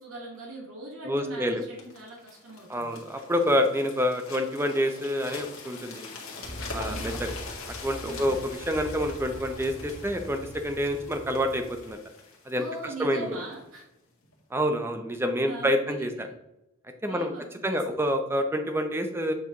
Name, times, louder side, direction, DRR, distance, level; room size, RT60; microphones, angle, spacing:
voice 1, 0.0-3.0 6.7-7.1 8.1-8.4 12.5-13.8 15.4-16.3 17.1-17.4 17.7-18.0, right 2 dB, 85° right, -3 dB, 1.9 m, -41 dB
voice 2, 1.0-1.6 2.7-6.1 6.7-7.3 7.7-12.0 12.5-12.6 13.0-13.3 14.5-16.3 17.0-17.3 17.6-19.3, equal, 10° right, 6 dB, 0.6 m, -27 dB
sound 1, 1.8-13.6 14.2-14.4, left 4 dB, 85° left, 1.8 m, -44 dB
sound 2, 6.4-11.9, equal, 70° left, 1.9 m, -41 dB
8.2 x 4.7 x 3.0 m, 0.89 s
head